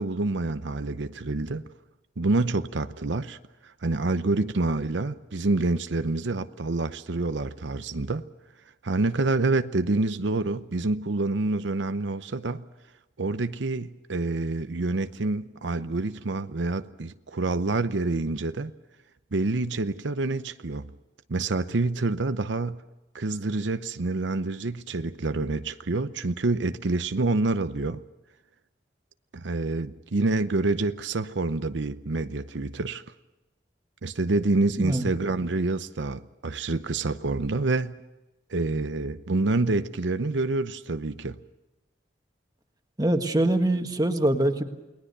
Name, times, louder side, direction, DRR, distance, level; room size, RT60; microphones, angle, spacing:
voice 1, 0.0-1.6 2.2-3.4 3.6-8.2 8.8-12.6 13.2-18.7 19.3-20.9 21.3-22.8 23.1-28.0 29.3-33.0 34.0-37.9 38.5-41.4, right 3 dB, 85° right, 0.8 m, -27 dB
voice 2, 34.8-35.1 43.0-44.6, right 1 dB, 20° right, 1.6 m, -23 dB
29.0 x 20.0 x 6.7 m
head